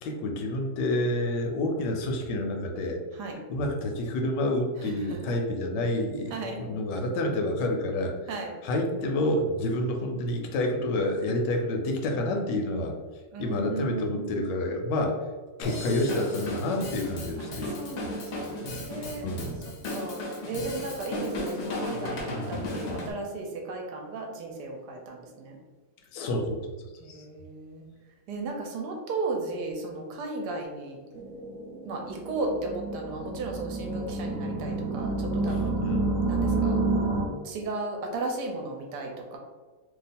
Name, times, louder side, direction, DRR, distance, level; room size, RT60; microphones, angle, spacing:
voice 1, 0.0-3.0 3.5-8.2 8.6-12.9 13.4-15.2 15.6-17.8 19.2-19.6 26.1-26.6 27.1-27.2 35.5-36.1, left 1 dB, 80° left, 2 dB, 1.2 m, -28 dB
voice 2, 4.8-5.2 6.3-6.7 8.3-8.5 13.3-14.5 17.4-19.2 19.9-20.2 20.5-25.6 27.0-27.9 28.3-31.0 31.8-35.8 36.3-36.8 37.4-39.4, right 3 dB, 75° right, 1 dB, 1.1 m, -35 dB
Drum kit / Drum, 15.6-23.1, left 1 dB, 60° left, 0.7 m, -35 dB
sound 1, 31.1-37.3, right 3 dB, 50° right, 1.1 m, -29 dB
2.9 x 2.4 x 4.1 m, 1.3 s
omnidirectional pair, 1.9 m